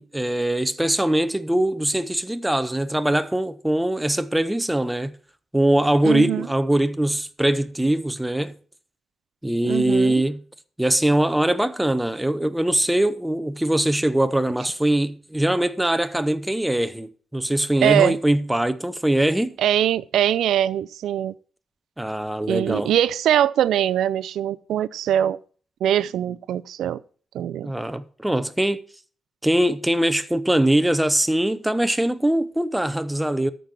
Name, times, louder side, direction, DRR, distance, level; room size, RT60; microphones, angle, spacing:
voice 1, 0.0-5.1 5.5-8.5 9.4-10.4 10.8-19.5 22.0-22.9 27.6-28.8 29.4-33.5, right 1 dB, 5° right, 0.6 m, -22 dB
voice 2, 6.0-6.5 9.6-10.2 17.8-18.2 19.6-21.3 22.5-25.4 25.8-27.0 27.3-27.7, right 11 dB, 90° right, 0.4 m, -22 dB
13.0 x 5.3 x 6.0 m
cardioid pair, 135°, 0 cm